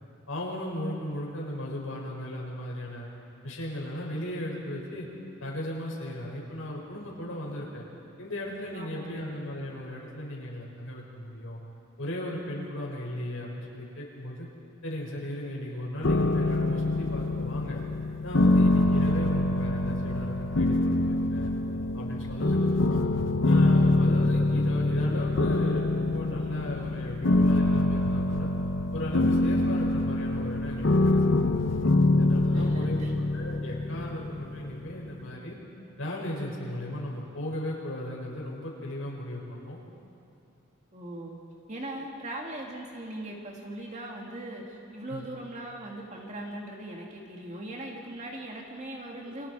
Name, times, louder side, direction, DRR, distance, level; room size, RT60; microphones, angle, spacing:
voice 1, 0.3-3.1 3.4-5.1 5.4-7.8 8.2-11.6 12.0-14.5 14.8-17.8 18.2-21.5 21.9-23.0 23.4-28.5 28.9-31.4 32.1-35.6 36.0-39.8 45.1-45.3, left 1 dB, 85° left, -3 dB, 6.2 m, -36 dB
voice 2, 8.7-9.2 22.4-22.9 32.5-33.1 40.9-41.4 41.7-49.5, right 1 dB, 35° right, -1 dB, 2.2 m, -40 dB
sound 1, 16.0-35.0, left 2 dB, 60° left, 0.8 m, -25 dB
29.0 x 24.5 x 4.8 m, 2.7 s
head